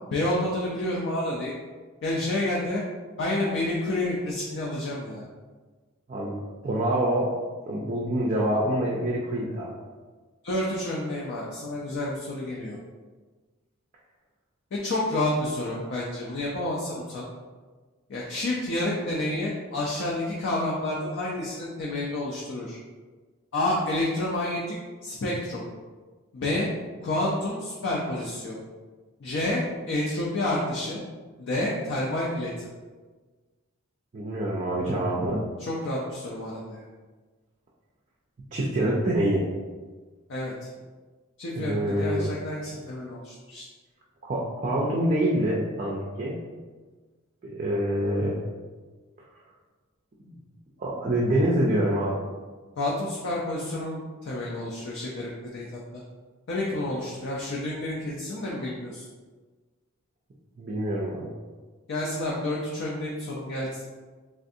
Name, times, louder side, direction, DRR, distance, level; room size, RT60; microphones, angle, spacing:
voice 1, 0.1-1.5 2.0-2.8 3.2-5.2 10.4-12.8 14.7-17.2 18.1-22.8 23.5-24.8 25.0-25.6 26.3-26.7 27.0-28.6 29.2-29.6 29.9-31.0 31.4-32.7 35.6-36.8 40.3-40.5 41.4-43.6 52.8-56.0 56.5-59.1 61.9-63.8, left 1 dB, 55° left, -4 dB, 0.4 m, -29 dB
voice 2, 6.6-7.3 7.7-9.7 34.1-35.4 38.5-39.4 41.5-42.3 44.3-46.4 47.4-48.4 50.8-52.2 60.6-61.3, right 1 dB, 35° right, -4 dB, 0.4 m, -26 dB
3.4 x 2.5 x 2.6 m, 1.4 s
head